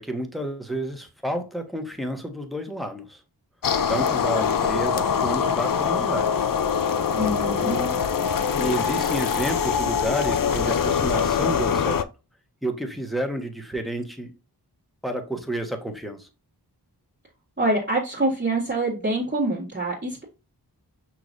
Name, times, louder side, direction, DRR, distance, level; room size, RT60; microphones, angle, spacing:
voice 1, 0.0-3.2 3.9-6.4 7.6-8.0 8.5-12.0 12.6-14.3 15.0-16.3, right 1 dB, ahead, 1.1 m, -30 dB
sound 1, 3.6-12.0, left 7 dB, 55° left, 0.5 m, -23 dB
voice 2, 7.2-7.8 17.6-20.2, right 1 dB, 25° right, 1.9 m, -25 dB
5.8 x 3.1 x 2.5 m
wide cardioid pair, 45°, 40 cm